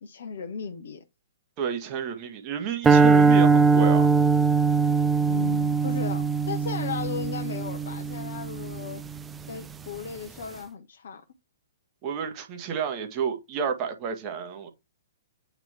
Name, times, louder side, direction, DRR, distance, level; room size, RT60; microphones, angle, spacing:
voice 1, 0.0-1.0 5.3-9.0 9.5-11.2, left 6 dB, 60° left, 0.8 m, -36 dB
voice 2, 1.6-4.1 12.0-14.7, right 7 dB, 30° right, 1.6 m, -31 dB
sound 1, 2.8-9.2, right 5 dB, 10° right, 0.4 m, -21 dB
8.9 x 3.0 x 3.4 m
figure-of-eight pair, 115°, 0 cm